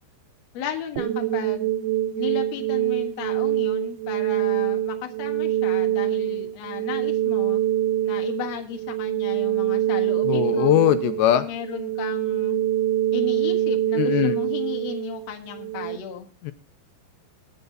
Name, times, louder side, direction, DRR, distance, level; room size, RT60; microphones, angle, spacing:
voice 1, 0.5-1.7 2.2-7.6 8.0-10.8 11.3-12.6 13.1-16.3, left 9 dB, 60° left, 4 dB, 1.9 m, -35 dB
sound 1, 1.0-16.0, right 12 dB, 75° right, 2.4 m, -25 dB
voice 2, 10.2-11.5 13.9-14.4 16.4-16.5, left 13 dB, 85° left, 10 dB, 3.1 m, -20 dB
20.5 x 6.9 x 4.0 m, 0.38 s
omnidirectional pair, 5.1 m